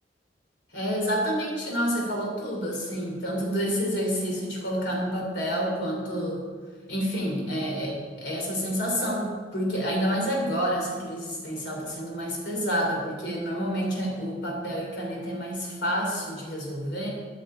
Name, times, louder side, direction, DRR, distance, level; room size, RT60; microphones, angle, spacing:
voice 1, 0.7-6.4 6.9-17.1, equal, 90° left, -2 dB, 3.2 m, -29 dB
13.0 x 6.5 x 4.5 m, 1.5 s
head